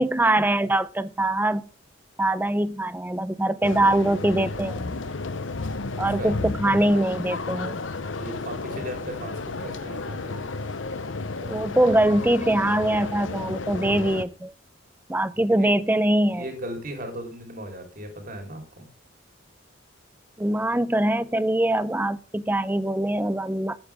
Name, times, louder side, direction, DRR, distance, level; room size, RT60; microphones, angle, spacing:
voice 1, 0.0-1.6 2.2-5.0 6.0-7.8 11.4-14.5 15.1-16.5 20.4-23.8, right 1 dB, 10° right, 0.5 m, -23 dB
sound 1, 3.6-14.2, left 3 dB, 75° left, 0.9 m, -32 dB
voice 2, 5.9-6.3 8.2-10.6 15.3-15.7 16.3-18.9, right 1 dB, 45° right, 3.4 m, -37 dB
12.0 x 8.8 x 3.4 m
head